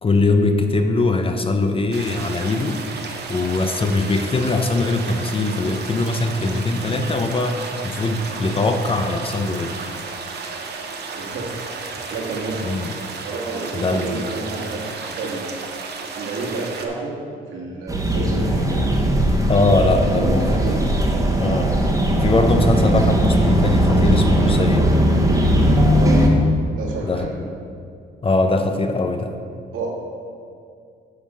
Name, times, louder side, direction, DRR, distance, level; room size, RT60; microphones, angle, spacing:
voice 1, 0.0-2.8 3.3-9.9 12.6-12.9 13.7-14.2 19.5-20.5 21.4-21.8 22.2-24.9 27.0-27.3 28.2-29.3, left 2 dB, 30° left, 6 dB, 0.7 m, -21 dB
sound 1, 1.9-16.9, right 4 dB, 55° right, 0.9 m, -33 dB
voice 2, 11.2-12.7 13.2-15.8 16.2-17.2 17.5-18.9 20.1-20.8 21.4-21.6 26.0-26.3 26.7-27.3 29.7-29.9, right 3 dB, 85° right, -4 dB, 2.0 m, -30 dB
sound 2, 17.9-26.3, equal, 15° right, 1.2 m, -18 dB
9.6 x 3.6 x 6.3 m, 2.3 s
cardioid pair, 90°, 20 cm